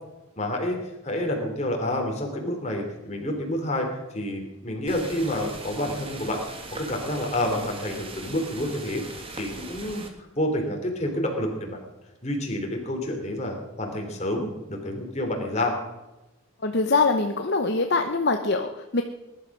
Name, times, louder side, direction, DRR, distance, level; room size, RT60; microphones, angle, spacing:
voice 1, 0.4-0.8 1.0-3.9 4.1-6.4 6.7-10.0 10.3-11.8 12.2-15.8, left 1 dB, 30° left, 2 dB, 3.4 m, -28 dB
sound 1, 4.9-10.1, right 2 dB, 25° right, 1.9 m, -40 dB
voice 2, 16.6-19.0, left 3 dB, 50° left, 6 dB, 0.9 m, -23 dB
20.0 x 12.0 x 6.2 m, 1.0 s
head